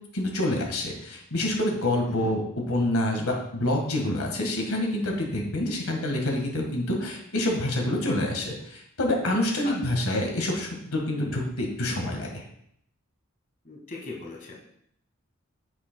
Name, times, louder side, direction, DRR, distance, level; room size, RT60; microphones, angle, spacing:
voice 1, 0.1-2.4 2.7-12.4, left 1 dB, 90° left, 1 dB, 1.6 m, -27 dB
voice 2, 13.6-14.6, left 3 dB, 40° left, -1 dB, 1.4 m, -39 dB
9.6 x 6.5 x 2.2 m, 0.71 s
head